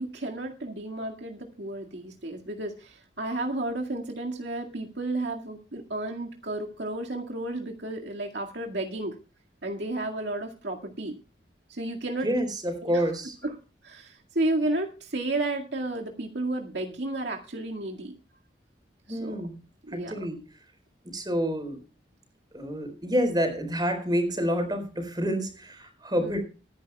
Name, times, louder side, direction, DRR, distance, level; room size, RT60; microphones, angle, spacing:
voice 1, 0.0-9.2 9.6-11.2 11.7-12.3 12.8-13.0 13.4-13.5 13.8-18.1 19.1-19.4 19.9-20.1 26.2-26.4, right 2 dB, 75° right, 1 dB, 2.0 m, -32 dB
voice 2, 12.2-13.4 19.1-19.6 19.9-20.4 21.0-21.8 22.5-26.4, equal, 25° right, 5 dB, 4.3 m, -28 dB
24.5 x 10.5 x 2.3 m, 0.34 s
head